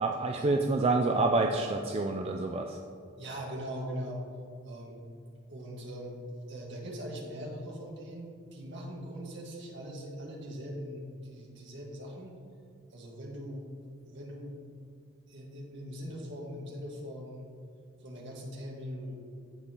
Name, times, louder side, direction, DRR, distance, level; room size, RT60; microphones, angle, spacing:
voice 1, 0.0-2.8, right 3 dB, 30° right, 2 dB, 0.3 m, -28 dB
voice 2, 3.2-4.2 4.6-5.0 5.5-6.2 6.5-12.3 12.9-13.6 14.1-14.6 15.3-17.5 18.0-19.2, equal, 55° right, -2 dB, 1.6 m, -41 dB
15.0 x 5.2 x 2.9 m, 2.3 s
head